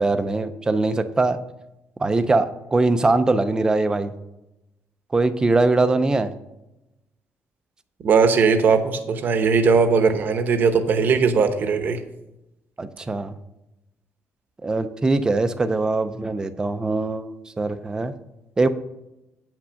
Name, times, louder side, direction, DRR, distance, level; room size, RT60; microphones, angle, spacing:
voice 1, 0.0-1.4 2.0-4.1 5.1-6.3 12.8-13.3 14.6-17.3 17.6-18.1 18.6-18.7, right 3 dB, 15° right, 11 dB, 0.5 m, -21 dB
voice 2, 8.0-12.0, right 5 dB, 45° right, 8 dB, 0.9 m, -19 dB
8.9 x 6.1 x 5.7 m, 0.93 s
cardioid pair, 175°, 5 cm